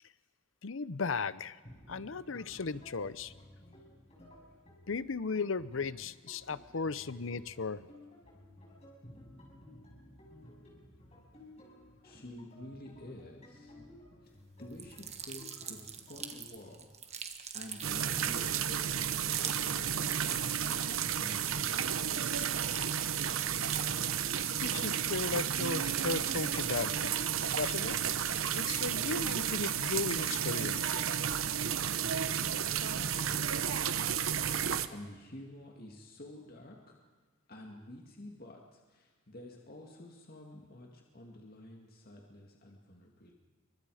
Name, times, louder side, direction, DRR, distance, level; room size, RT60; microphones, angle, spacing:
voice 1, 0.6-1.6 1.9-3.3 4.9-7.9 24.6-27.1 27.5-28.0 28.5-31.1, left 4 dB, 70° left, 16 dB, 0.8 m, -36 dB
sound 1, 1.6-16.4, left 1 dB, 35° left, 6.2 m, -55 dB
voice 2, 12.0-13.7 14.2-22.3 32.9-34.0 34.5-37.0 37.5-43.3, left 1 dB, 50° left, 1 dB, 2.3 m, -50 dB
sound 2, 14.7-21.2 21.5-26.4 26.8-28.7, right 7 dB, 35° right, 1.7 m, -45 dB
sound 3, 17.8-34.9, right 8 dB, 90° right, 1.0 m, -32 dB
28.5 x 24.5 x 5.0 m, 1.4 s
head